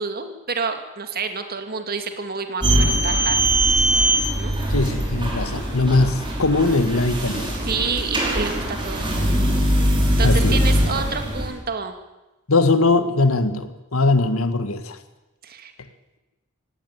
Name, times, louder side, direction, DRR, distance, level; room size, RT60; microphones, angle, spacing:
voice 1, 0.0-3.4 4.4-4.5 7.6-9.6 10.2-11.9 15.4-15.7, right 5 dB, 45° right, 7 dB, 2.4 m, -29 dB
sound 1, 2.6-11.5, right 1 dB, 25° right, 5.4 m, -21 dB
voice 2, 4.7-7.5 10.2-10.6 12.5-15.0, left 3 dB, 85° left, 11 dB, 1.7 m, -20 dB
17.5 x 17.0 x 9.6 m, 1.0 s
head